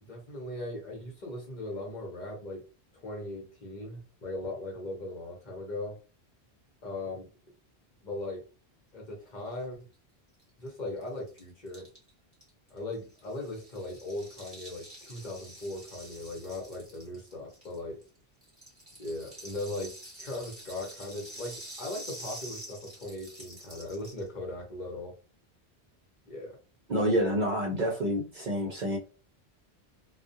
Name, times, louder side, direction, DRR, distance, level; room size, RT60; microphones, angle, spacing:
voice 1, 0.0-2.6 3.0-6.0 6.8-7.3 8.0-8.4 8.9-9.9 10.6-11.9 12.7-18.0 19.0-19.9 20.2-25.1 26.2-26.6, left 2 dB, 50° left, 0 dB, 0.8 m, -38 dB
Rattle (instrument), 10.4-10.5 10.7-10.8 11.0-18.1 18.4-24.3, right 1 dB, 15° right, 1.1 m, -47 dB
voice 2, 26.9-29.0, equal, 55° right, 0 dB, 0.6 m, -28 dB
2.3 x 2.1 x 2.6 m, 0.34 s
omnidirectional pair, 1.1 m